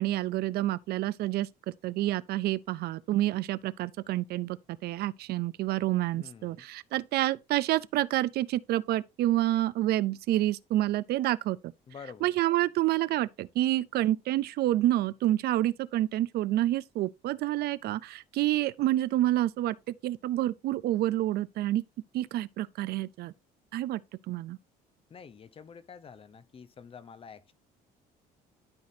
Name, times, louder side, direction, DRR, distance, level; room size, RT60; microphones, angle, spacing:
voice 1, 0.0-1.5 1.8-11.6 12.2-19.8 20.0-21.8 22.1-23.3 23.7-24.0 24.3-24.6, right 14 dB, 70° right, 0.5 m, -28 dB
voice 2, 6.1-6.7 11.9-12.3 25.1-27.5, left 6 dB, 35° left, 0.7 m, -48 dB
12.5 x 4.1 x 2.7 m
cardioid pair, 110°, 17 cm